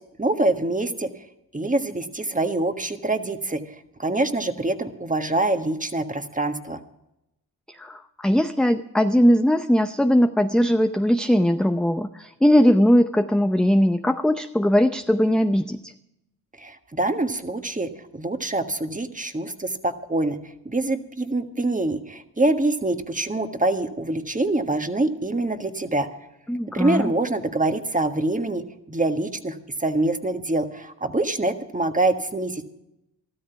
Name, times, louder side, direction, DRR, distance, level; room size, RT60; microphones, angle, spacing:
voice 1, 0.2-1.1 1.5-6.8 16.6-26.1 26.7-28.6 28.9-32.6, right 2 dB, 20° right, 7 dB, 1.6 m, -25 dB
voice 2, 7.8-15.9 26.5-27.1, equal, ahead, 7 dB, 0.6 m, -20 dB
13.5 x 13.0 x 5.8 m, 0.86 s
cardioid pair, 55°, 40 cm